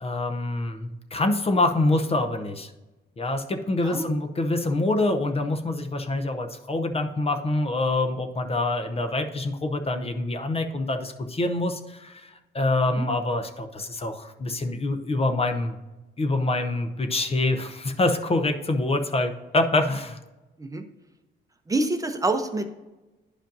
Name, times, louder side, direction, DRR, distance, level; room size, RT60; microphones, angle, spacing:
voice 1, 0.0-2.7 3.2-15.8 16.2-20.2, left 2 dB, 30° left, 6 dB, 0.7 m, -26 dB
voice 2, 21.7-22.7, right 2 dB, 15° right, 6 dB, 0.7 m, -26 dB
10.0 x 5.1 x 2.6 m, 1.1 s
cardioid pair, 90°, 20 cm